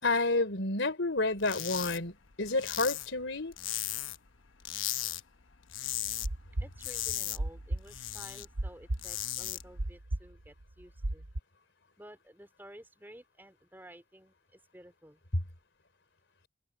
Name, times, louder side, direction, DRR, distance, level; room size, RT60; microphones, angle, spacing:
voice 1, 0.0-3.5, left 2 dB, 70° left, 3.7 m, -30 dB
sound 1, 1.4-2.0 2.3-4.3 4.6-5.2 5.5-6.3 6.6-8.4 8.8-9.6, left 13 dB, 85° left, 1.0 m, -36 dB
sound 2, 5.9-9.2 9.5-11.4, right 1 dB, 80° right, 1.1 m, -35 dB
voice 2, 6.6-11.3 12.0-15.2, right 1 dB, 10° right, 4.1 m, -53 dB
head